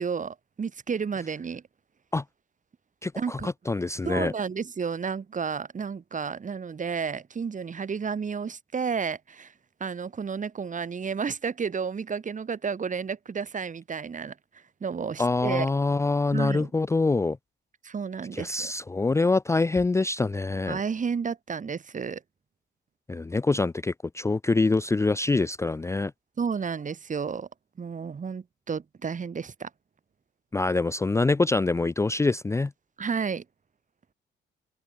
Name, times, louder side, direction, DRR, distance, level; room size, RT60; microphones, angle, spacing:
voice 1, 0.0-1.6 3.2-3.5 4.0-9.5 9.8-14.3 14.8-15.7 16.3-16.7 17.8-18.7 20.7-22.2 26.4-27.5 27.8-29.7 33.0-33.4, right 6 dB, 40° right, 4.1 m, -31 dB
voice 2, 3.0-4.3 15.2-17.4 18.3-20.8 23.1-26.1 30.5-32.7, left 3 dB, 15° left, 0.5 m, -25 dB
open air
cardioid pair, 90°, 20 cm